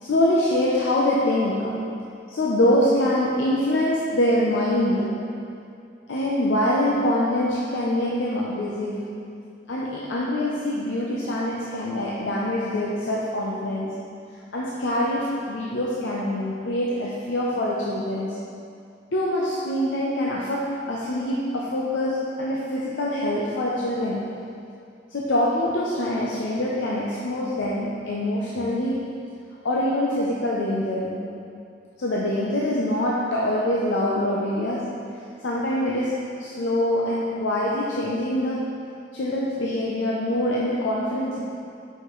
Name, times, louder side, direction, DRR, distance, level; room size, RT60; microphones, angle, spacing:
voice 1, 0.0-1.8 2.3-5.2 6.1-9.2 9.7-13.9 14.5-18.4 19.1-24.4 25.1-29.1 29.6-31.2 32.0-34.9 35.4-38.7 39.1-41.4, left 1 dB, 80° left, -5 dB, 0.6 m, -24 dB
5.7 x 5.5 x 3.1 m, 2.5 s
head